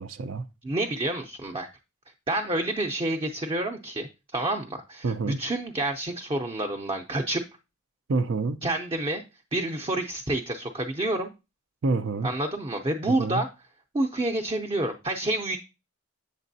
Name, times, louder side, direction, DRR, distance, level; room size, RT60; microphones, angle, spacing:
voice 1, 0.0-0.4 5.0-5.4 8.1-8.6 11.8-12.3 13.1-13.4, right 3 dB, 75° right, 0.5 m, -27 dB
voice 2, 0.6-1.7 2.3-7.4 8.6-9.2 9.5-11.3 12.2-13.5 13.9-15.6, right 1 dB, 25° right, 0.6 m, -28 dB
8.2 x 6.7 x 2.7 m
head